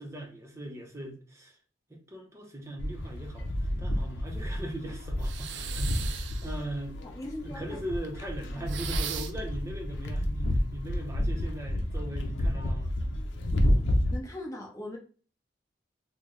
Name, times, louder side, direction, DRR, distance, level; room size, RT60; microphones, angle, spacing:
voice 1, 0.0-1.6 1.9-3.5 3.8-7.0 7.4-12.9, right 1 dB, 15° right, 0.7 m, -39 dB
sound 1, 2.8-14.2, left 1 dB, 85° left, 0.6 m, -30 dB
sound 2, 5.2-6.6 8.7-9.5, right 9 dB, 75° right, 0.4 m, -38 dB
voice 2, 7.0-7.8 14.1-15.0, left 1 dB, 20° left, 0.8 m, -39 dB
4.0 x 2.1 x 3.2 m
head